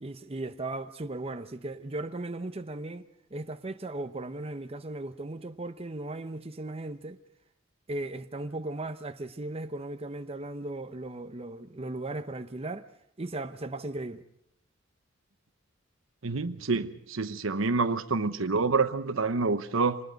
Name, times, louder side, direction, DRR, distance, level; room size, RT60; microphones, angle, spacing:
voice 1, 0.0-3.1 3.3-7.2 7.9-12.9 13.2-14.2, right 2 dB, 30° right, 0.8 m, -37 dB
voice 2, 16.2-20.0, right 4 dB, 75° right, 1.0 m, -27 dB
26.0 x 20.0 x 5.2 m
head